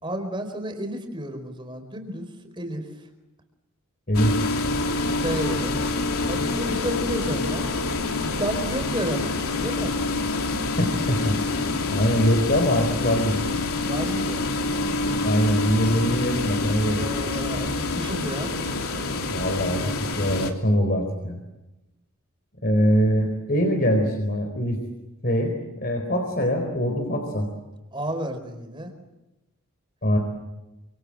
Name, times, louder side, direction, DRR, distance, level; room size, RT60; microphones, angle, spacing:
voice 1, 0.0-3.1 5.2-5.8 6.3-7.7 8.2-10.0 13.8-14.5 14.8-15.3 17.0-18.5 27.9-28.9, right 1 dB, 20° right, 7 dB, 4.6 m, -32 dB
sound 1, 4.1-20.5, left 3 dB, 80° left, 3.1 m, -26 dB
voice 2, 11.1-11.5 11.9-13.5 15.2-17.1 19.3-21.4 22.6-24.8 25.2-27.5 30.0-30.2, equal, 45° left, 3 dB, 4.3 m, -23 dB
28.5 x 26.5 x 7.8 m, 0.99 s
head